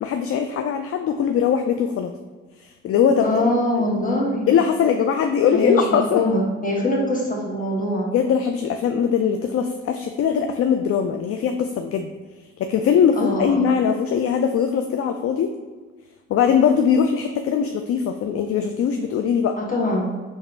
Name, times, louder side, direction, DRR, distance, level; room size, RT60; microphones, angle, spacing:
voice 1, 0.0-2.1 2.8-3.3 4.5-6.2 8.1-12.1 12.6-15.5 16.3-19.5, left 7 dB, 40° left, 6 dB, 0.4 m, -21 dB
voice 2, 3.2-4.5 5.5-5.8 6.1-8.1 13.2-13.7 19.6-20.1, left 1 dB, 20° left, -3 dB, 1.5 m, -23 dB
3.6 x 2.7 x 4.5 m, 1.3 s
hypercardioid pair, 55°, 36 cm